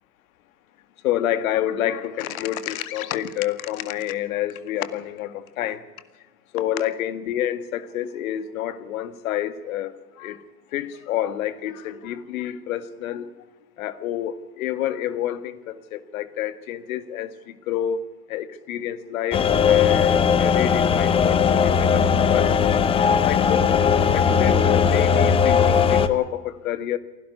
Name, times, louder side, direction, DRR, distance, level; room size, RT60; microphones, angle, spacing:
voice 1, 1.0-5.8 6.5-10.4 10.7-13.3 13.8-17.3 17.7-18.0 18.3-22.5 23.3-27.0, left 11 dB, 55° left, 13 dB, 2.0 m, -28 dB
sound 1, 19.3-26.1, left 7 dB, 10° left, 0.8 m, -18 dB
27.5 x 12.0 x 9.4 m, 1.2 s
hypercardioid pair, 130°, 48 cm